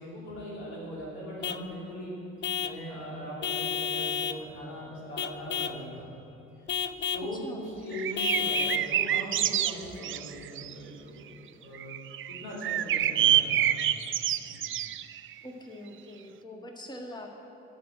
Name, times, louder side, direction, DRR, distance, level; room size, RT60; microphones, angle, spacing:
voice 1, 0.0-2.1 2.6-6.1 7.1-11.3 11.6-11.9 12.3-14.0 14.4-14.6, equal, 85° left, -6 dB, 3.0 m, -40 dB
Vehicle horn car horn honking / Truck, 1.4-1.7 2.4-2.8 3.4-4.4 5.2-5.8 6.7-7.3 8.2-8.9, left 7 dB, 35° left, 0.5 m, -31 dB
sound 1, 7.9-10.7 11.7-15.3, right 11 dB, 40° right, 0.4 m, -27 dB
voice 2, 15.4-17.4, left 1 dB, 15° left, 2 dB, 1.5 m, -43 dB
10.0 x 6.1 x 8.8 m, 2.8 s
hypercardioid pair, 45°, 30 cm